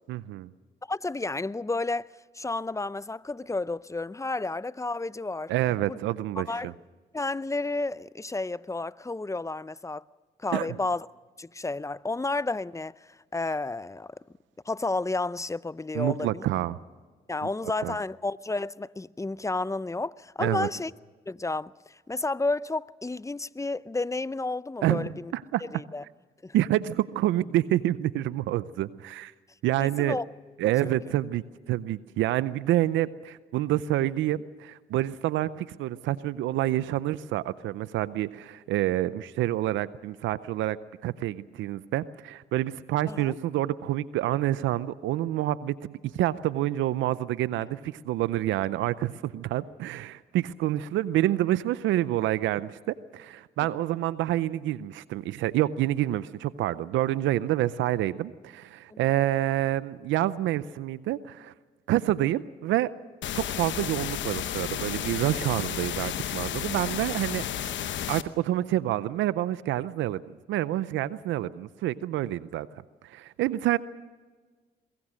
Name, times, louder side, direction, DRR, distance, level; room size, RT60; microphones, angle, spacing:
voice 1, 0.1-0.5 5.5-6.7 10.5-10.8 15.9-16.8 17.8-17.9 20.4-20.7 24.8-25.6 26.5-29.3 29.6-30.2 30.6-40.8 41.0-61.5 61.9-62.9 63.3-67.8 68.1-72.7 73.0-73.8, right 14 dB, 85° right, 0.6 m, -28 dB
voice 2, 0.9-2.1 2.3-5.5 5.9-6.0 6.4-6.7 7.1-10.0 10.4-11.1 11.4-12.9 13.3-14.1 14.7-16.5 17.3-20.9 21.3-21.7 22.1-25.3 25.7-26.0 26.4-26.5 29.8-30.3 30.8-31.0 43.1-43.3 58.9-59.0, left 3 dB, 15° left, 0.6 m, -31 dB
sound 1, 63.2-68.2, left 11 dB, 75° left, 1.0 m, -32 dB
23.0 x 21.5 x 6.4 m
supercardioid pair, 50°, 19 cm